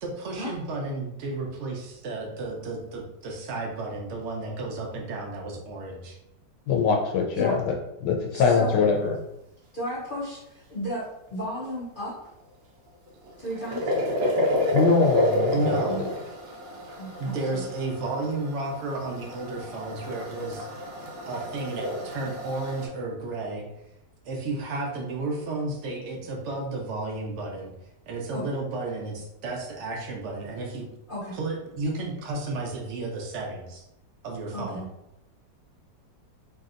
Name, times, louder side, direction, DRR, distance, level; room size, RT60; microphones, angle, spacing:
voice 1, 0.0-6.2 15.5-16.0 17.2-20.7 21.3-23.6 24.2-27.7 28.1-30.9 31.3-33.8 34.2-34.8, right 2 dB, 65° right, 0 dB, 0.7 m, -32 dB
voice 2, 6.7-7.7 8.0-9.1 14.7-16.1, left 5 dB, 85° left, 1 dB, 1.2 m, -23 dB
voice 3, 8.3-8.8 9.7-12.1 13.4-13.9 15.9-16.0 17.0-17.7 28.3-28.4 31.1-31.4 34.5-34.9, equal, 70° left, -7 dB, 0.5 m, -34 dB
sound 1, 13.1-22.9, left 1 dB, 80° right, 1.3 m, -29 dB
3.1 x 2.7 x 2.4 m, 0.85 s
omnidirectional pair, 1.9 m